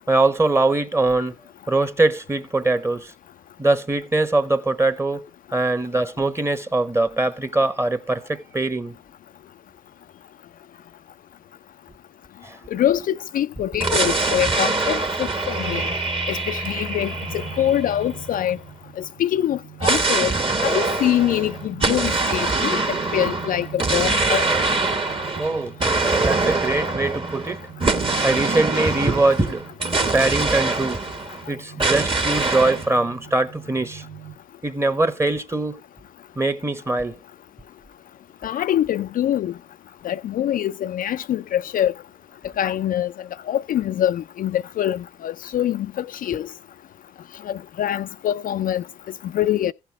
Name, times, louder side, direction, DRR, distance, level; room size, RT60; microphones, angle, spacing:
voice 1, 0.1-1.3 1.7-3.1 3.6-8.9 12.4-12.6 25.4-25.8 26.2-27.6 28.2-29.6 30.1-31.0 31.5-34.0 34.6-35.8 36.4-37.2, right 2 dB, 15° right, 1.2 m, -22 dB
voice 2, 12.7-15.8 16.3-18.6 19.0-20.3 20.6-24.5 38.4-39.5 40.0-41.9 42.6-43.1 43.5-46.5 47.4-48.8 49.2-49.7, left 11 dB, 50° left, 0.4 m, -24 dB
sound 1, 13.8-18.5 19.8-31.4 31.8-32.9, right 3 dB, 30° right, 1.6 m, -24 dB
sound 2, 16.9-34.3, right 9 dB, 85° right, 1.5 m, -43 dB
15.0 x 5.8 x 3.4 m
hypercardioid pair, 50°, 18 cm